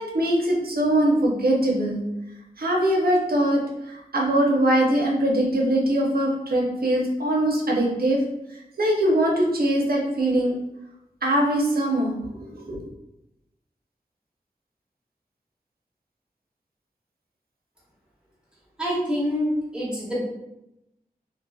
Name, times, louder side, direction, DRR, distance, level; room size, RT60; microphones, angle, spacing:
voice 1, 0.0-2.0 2.6-3.6 3.9-8.2 8.8-10.5 11.2-12.9, right 1 dB, 80° right, -2 dB, 0.6 m, -22 dB
voice 2, 18.8-20.2, equal, 5° right, -7 dB, 1.1 m, -26 dB
2.7 x 2.5 x 2.3 m, 0.88 s
wide cardioid pair, 45°, 15 cm